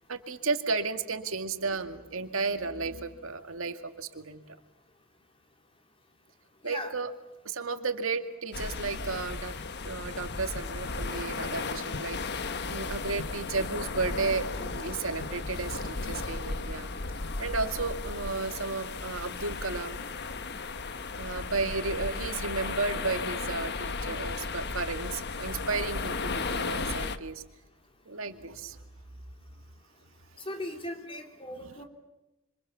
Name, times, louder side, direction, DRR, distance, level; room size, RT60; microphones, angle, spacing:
voice 1, 0.1-4.6 6.6-7.1 7.4-9.6 9.8-12.4 12.7-16.9 17.4-20.0 21.1-27.4 28.1-28.8 31.5-31.8, right 4 dB, 85° right, 7 dB, 2.1 m, -33 dB
sound 1, 8.5-27.2, left 3 dB, 55° left, 1.3 m, -35 dB
voice 2, 30.5-31.8, left 1 dB, 25° left, 3 dB, 3.8 m, -38 dB
27.0 x 26.0 x 7.1 m, 0.97 s
head